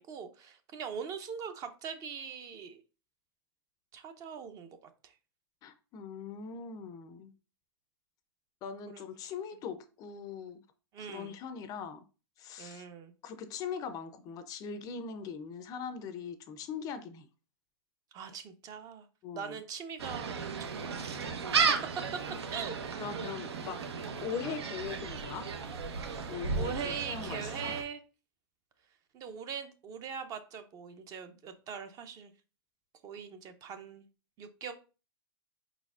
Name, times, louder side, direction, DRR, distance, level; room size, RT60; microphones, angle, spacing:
voice 1, 0.0-2.8 3.9-4.7 5.0-5.1 8.9-9.0 10.9-11.4 12.6-13.1 18.1-19.1 19.3-21.4 22.5-22.8 24.0-24.3 26.0-28.0 29.1-32.3 33.0-34.0 34.4-34.7, right 7 dB, 25° right, 9 dB, 0.5 m, -42 dB
voice 2, 5.6-7.3 8.6-10.6 11.0-12.0 12.4-12.8 13.2-17.3 19.2-19.6 22.2-22.4 23.0-23.8 24.2-25.5 26.3-27.7, left 6 dB, 25° left, 10 dB, 0.4 m, -41 dB
Gull seagull, 20.0-27.8, right 5 dB, 90° right, 0.8 m, -34 dB
4.8 x 4.1 x 2.4 m, 0.33 s
hypercardioid pair, 135°, 13 cm